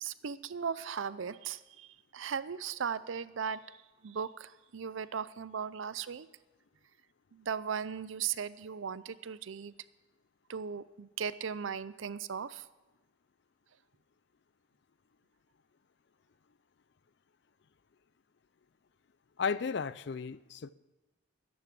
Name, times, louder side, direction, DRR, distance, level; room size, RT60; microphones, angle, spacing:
voice 1, 0.0-3.8 4.0-6.3 7.3-9.7 10.5-12.6, right 7 dB, 70° right, 0.5 m, -37 dB
voice 2, 19.4-20.7, left 5 dB, 55° left, 0.4 m, -34 dB
13.0 x 10.5 x 6.0 m
head